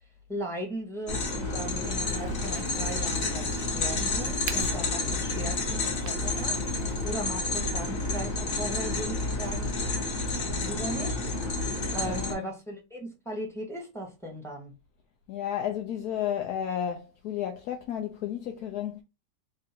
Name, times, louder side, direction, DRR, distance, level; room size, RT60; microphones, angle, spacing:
voice 1, 0.3-6.6 7.0-9.7 10.4-11.2 11.9-14.8, right 1 dB, ahead, 1.0 m, -38 dB
sound 1, 1.1-12.3, left 2 dB, 50° left, 1.4 m, -30 dB
Crack, 2.0-7.1, right 4 dB, 85° right, 1.3 m, -43 dB
voice 2, 12.0-12.5 15.3-19.0, left 10 dB, 70° left, 1.0 m, -32 dB
3.6 x 2.5 x 4.2 m
omnidirectional pair, 1.9 m